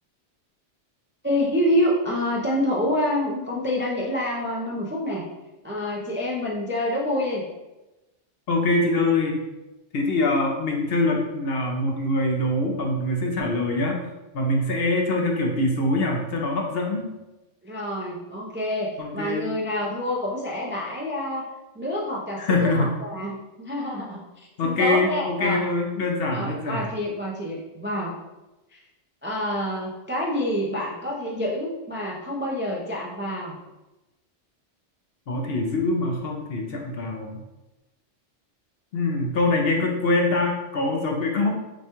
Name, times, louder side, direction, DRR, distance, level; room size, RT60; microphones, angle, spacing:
voice 1, 1.2-5.2 5.6-7.4 17.6-21.5 21.7-24.2 24.6-25.6 26.3-28.1 28.7-28.8 29.2-33.6, left 1 dB, 20° right, -3 dB, 0.3 m, -27 dB
voice 2, 8.5-9.3 9.9-14.0 14.3-17.1 19.0-19.5 22.4-22.9 24.6-26.9 35.3-37.4 38.9-41.5, left 2 dB, 60° left, 1 dB, 0.8 m, -24 dB
6.3 x 2.3 x 2.9 m, 1.0 s
omnidirectional pair, 1.2 m